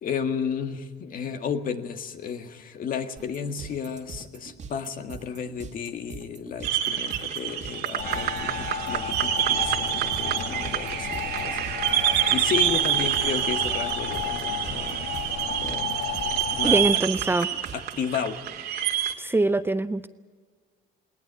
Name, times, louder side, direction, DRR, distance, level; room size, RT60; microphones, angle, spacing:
voice 1, 0.0-15.1 15.6-16.0 16.6-16.8 17.7-18.4, left 7 dB, 55° left, 7 dB, 1.8 m, -33 dB
sound 1, 3.2-17.9, right 5 dB, 45° right, 2.1 m, -42 dB
sound 2, 6.6-19.1, right 11 dB, 75° right, 2.0 m, -27 dB
sound 3, 8.0-16.9, left 6 dB, 90° left, 2.1 m, -33 dB
voice 2, 16.6-17.5 19.2-20.1, right 2 dB, 15° right, 12 dB, 0.6 m, -23 dB
19.5 x 19.5 x 9.0 m, 1.5 s
cardioid pair, 110°, 17 cm